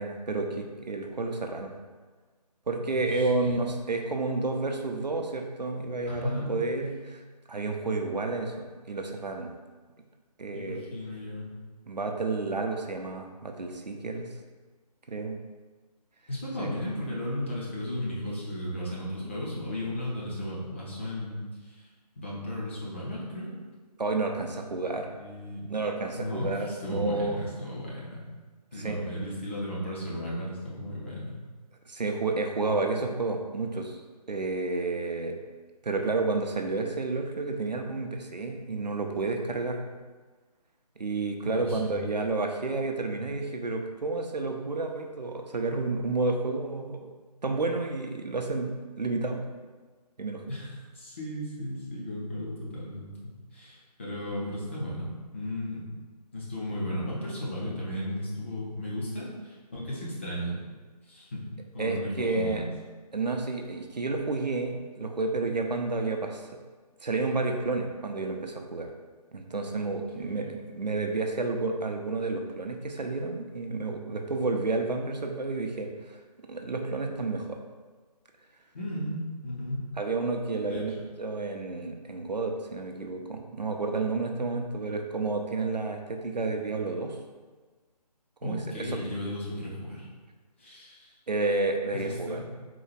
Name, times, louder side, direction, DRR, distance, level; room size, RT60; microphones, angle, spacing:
voice 1, 0.0-1.7 2.7-7.2 7.5-9.5 10.4-10.9 11.9-14.3 15.1-15.4 16.6-16.7 24.0-25.1 25.7-27.4 28.8-29.1 31.9-34.0 34.3-35.4 35.8-39.8 41.0-47.0 47.4-49.4 50.2-50.4 61.8-62.6 63.1-66.5 67.0-68.9 69.3-76.2 76.5-77.6 80.0-80.9 81.2-87.2 88.4-88.9 91.3-92.4, right 3 dB, 85° right, 3 dB, 0.6 m, -30 dB
voice 2, 2.9-3.7 6.1-6.5 10.5-11.5 16.3-21.8 22.2-23.5 25.2-25.7 26.2-28.2 28.7-31.3 41.4-42.0 50.5-55.8 56.3-60.6 61.1-62.6 70.2-70.5 78.7-79.9 80.7-80.8 88.4-90.1 90.6-91.1 91.9-92.5, left 1 dB, 20° left, -6 dB, 0.5 m, -35 dB
3.8 x 2.3 x 4.6 m, 1.4 s
figure-of-eight pair, 150°, 21 cm